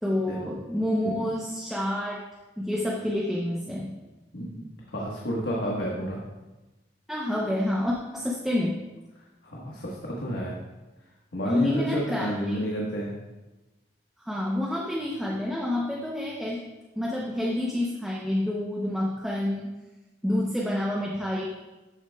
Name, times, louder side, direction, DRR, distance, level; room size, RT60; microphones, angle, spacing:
voice 1, 0.0-2.2 2.6-3.9 7.1-8.8 11.5-12.6 14.2-16.6 17.0-19.7 20.2-21.5, left 1 dB, ahead, -3 dB, 0.7 m, -28 dB
voice 2, 4.3-6.2 9.4-10.5 11.3-13.1, equal, 75° left, -4 dB, 1.4 m, -31 dB
12.5 x 7.9 x 2.3 m, 1.1 s
head